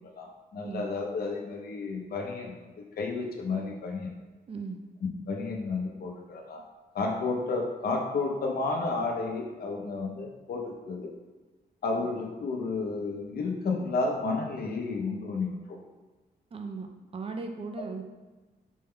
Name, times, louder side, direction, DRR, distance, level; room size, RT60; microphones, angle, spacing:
voice 1, 0.2-2.7 3.0-4.1 5.3-6.6 6.9-11.1 11.8-15.8, left 3 dB, 65° left, 1 dB, 0.7 m, -32 dB
voice 2, 4.5-4.8 16.5-18.0, right 4 dB, 35° right, 4 dB, 0.4 m, -37 dB
5.2 x 2.2 x 3.6 m, 1.2 s
wide cardioid pair, 145°, 17 cm